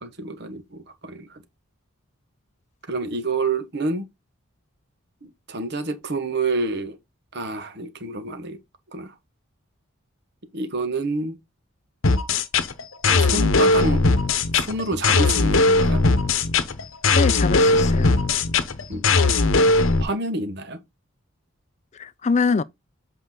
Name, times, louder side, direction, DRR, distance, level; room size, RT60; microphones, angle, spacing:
voice 1, 0.0-1.3 2.9-4.1 5.2-7.0 7.3-8.6 8.9-9.1 10.5-11.4 13.1-14.0 14.5-16.0 18.9-19.3 20.0-20.8, right 3 dB, 50° right, 1.1 m, -28 dB
sound 1, 12.0-20.0, left 3 dB, 65° left, 0.9 m, -19 dB
voice 2, 17.1-18.1 21.9-22.6, left 4 dB, 30° left, 0.4 m, -24 dB
7.9 x 4.5 x 3.8 m
head